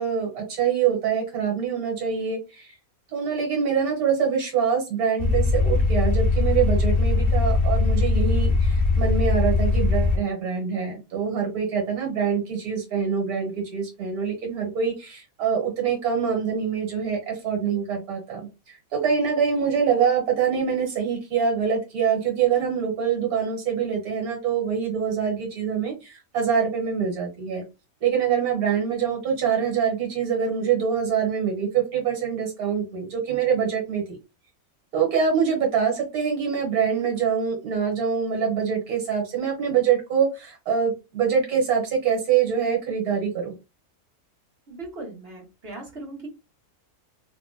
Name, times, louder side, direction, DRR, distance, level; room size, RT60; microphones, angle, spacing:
voice 1, 0.0-2.7 3.1-27.6 28.0-34.2 34.9-43.5, right 7 dB, 80° right, 1 dB, 1.7 m, -25 dB
sound 1, 5.2-10.2, left 3 dB, 50° left, 0.7 m, -21 dB
voice 2, 44.7-46.3, right 2 dB, 45° right, -2 dB, 1.3 m, -38 dB
3.2 x 2.8 x 2.2 m, 0.27 s
omnidirectional pair, 1.6 m